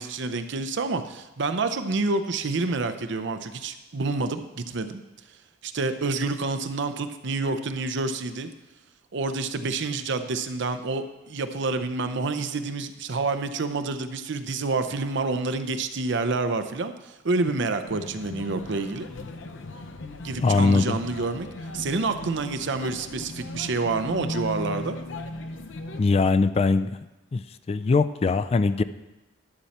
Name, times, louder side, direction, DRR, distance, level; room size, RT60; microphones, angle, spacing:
voice 1, 0.0-5.0 5.6-8.5 9.1-16.9 17.2-19.1 20.2-21.5 21.7-25.0, right 3 dB, 65° right, 10 dB, 0.7 m, -28 dB
sound 1, 17.8-26.0, left 1 dB, 70° left, 0.7 m, -37 dB
voice 2, 20.4-21.0 26.0-27.0 27.3-27.4 27.7-28.8, left 4 dB, 30° left, 12 dB, 0.3 m, -21 dB
11.5 x 7.1 x 4.3 m, 1.1 s
head